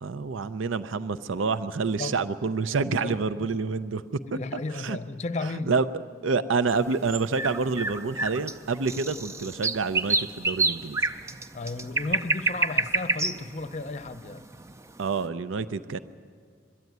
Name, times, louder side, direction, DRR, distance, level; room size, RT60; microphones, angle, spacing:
voice 1, 0.0-4.0 4.3-5.0 5.7-5.9 6.2-11.0 15.0-16.0, right 4 dB, 75° right, 13 dB, 0.6 m, -28 dB
voice 2, 3.0-3.5 4.3-5.7 11.5-14.5, left 2 dB, 35° left, 11 dB, 0.7 m, -34 dB
sound 1, 6.7-14.9, right 3 dB, 15° right, 0.5 m, -28 dB
21.5 x 13.5 x 9.3 m, 2.1 s
head